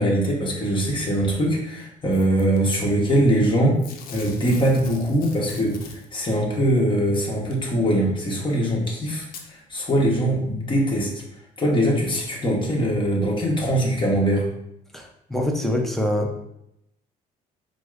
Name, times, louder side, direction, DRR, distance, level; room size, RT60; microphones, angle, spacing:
voice 1, 0.0-3.8 4.1-11.2 11.6-14.5, right 1 dB, 30° left, -2 dB, 0.9 m, -22 dB
Packing tape duct tape / Tearing, 2.1-2.6 3.8-6.4 7.5-7.6 8.5-8.6 9.2-9.5 10.1-10.2, left 4 dB, 60° left, 0.5 m, -40 dB
voice 2, 14.9-16.4, left 1 dB, ahead, 1 dB, 0.5 m, -25 dB
4.6 x 2.0 x 2.4 m, 0.78 s
cardioid pair, 110°, 17 cm